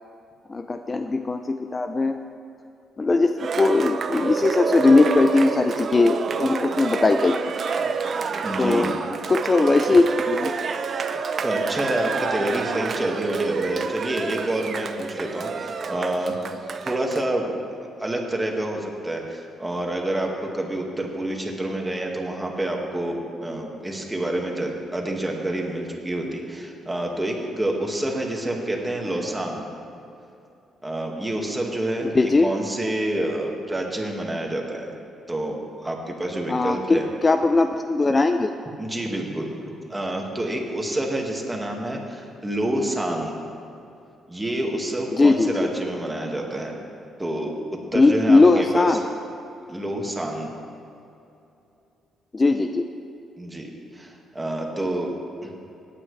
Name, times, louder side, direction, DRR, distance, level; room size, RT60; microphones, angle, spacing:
voice 1, 0.5-2.2 3.0-7.4 8.6-8.9 9.3-10.5 32.1-32.5 36.5-38.5 45.2-45.7 47.9-49.0 52.3-52.9, left 3 dB, 25° left, 7 dB, 0.4 m, -19 dB
Cheering, 3.4-17.2, right 5 dB, 50° right, 0.6 m, -28 dB
voice 2, 8.4-8.9 11.0-16.3 16.8-29.7 30.8-34.9 35.3-37.1 38.8-39.5 39.9-43.3 44.3-46.8 47.2-47.5 47.9-49.0 49.7-50.5 53.4-55.1 55.4-55.6, right 1 dB, 15° right, 0 dB, 1.8 m, -28 dB
17.5 x 9.2 x 3.3 m, 2.7 s
cardioid pair, 90°, 0 cm